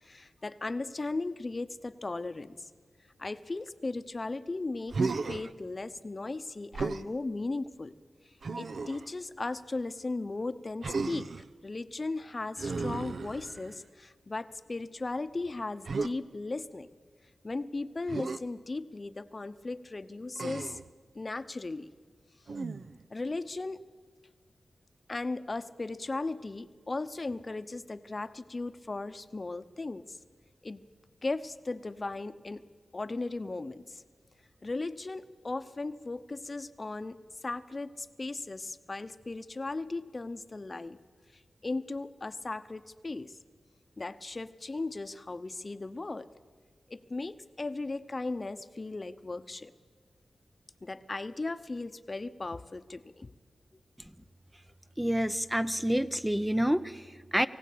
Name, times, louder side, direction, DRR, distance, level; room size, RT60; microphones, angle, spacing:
voice 1, 0.0-2.7 3.2-7.9 8.6-11.3 11.6-16.9 17.4-20.8 21.1-21.9 23.1-23.8 25.1-30.2 30.6-30.8 31.2-32.6 32.9-34.0 34.6-37.2 37.4-41.0 41.6-43.4 44.0-46.3 46.9-49.7 50.8-53.3, left 3 dB, 40° left, 12 dB, 0.8 m, -37 dB
Human voice, 4.9-5.5 6.7-7.1 8.4-9.1 10.8-11.5 12.6-13.8 15.9-16.1 18.1-18.4 20.4-20.9 22.5-23.0, right 4 dB, 75° right, 0.7 m, -34 dB
voice 2, 55.0-57.5, equal, 5° right, 11 dB, 0.5 m, -28 dB
23.0 x 16.0 x 8.5 m, 1.5 s
wide cardioid pair, 75°, 0 cm